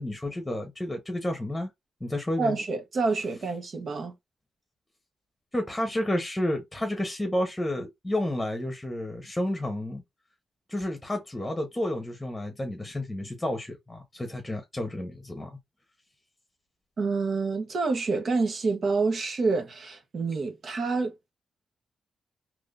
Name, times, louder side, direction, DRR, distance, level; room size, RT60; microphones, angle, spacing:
voice 1, 0.0-1.7 2.0-2.6 5.5-10.0 10.7-15.6, left 1 dB, 15° left, 1.1 m, -31 dB
voice 2, 2.4-4.1 17.0-21.3, right 4 dB, 60° right, 1.1 m, -28 dB
3.6 x 3.0 x 2.6 m
cardioid pair, 75°, 0 cm